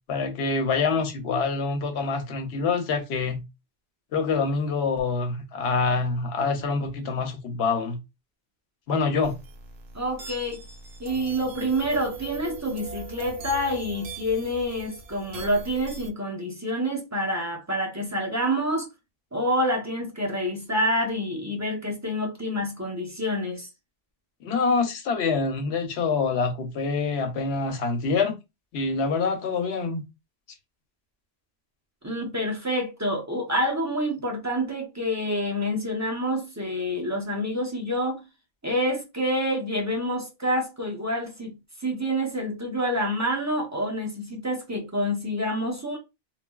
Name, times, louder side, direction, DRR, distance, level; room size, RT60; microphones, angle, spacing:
voice 1, 0.1-3.4 4.1-8.0 8.9-9.4 24.4-28.4 28.7-30.0, left 4 dB, 90° left, 0.9 m, -26 dB
sound 1, 9.2-16.1, right 4 dB, 75° right, 0.9 m, -40 dB
voice 2, 9.9-10.6 11.0-18.9 19.3-23.7 32.0-38.2 38.6-41.6 41.8-46.0, equal, 20° right, 0.6 m, -27 dB
3.2 x 2.1 x 2.2 m
omnidirectional pair, 1.1 m